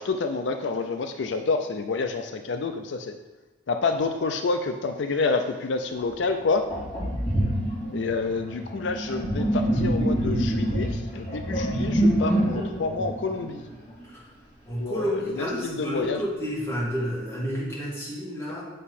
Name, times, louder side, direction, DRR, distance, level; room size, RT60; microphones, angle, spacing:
voice 1, 0.0-3.2 3.7-6.6 7.9-13.6 14.8-16.2 18.5-18.6, left 4 dB, 75° left, 7 dB, 0.4 m, -28 dB
Sink (filling or washing), 6.0-6.1 6.7-14.0, right 1 dB, 35° left, 2.6 m, -26 dB
voice 2, 14.7-18.7, equal, 15° left, -7 dB, 2.6 m, -30 dB
7.6 x 6.0 x 4.2 m, 1.2 s
head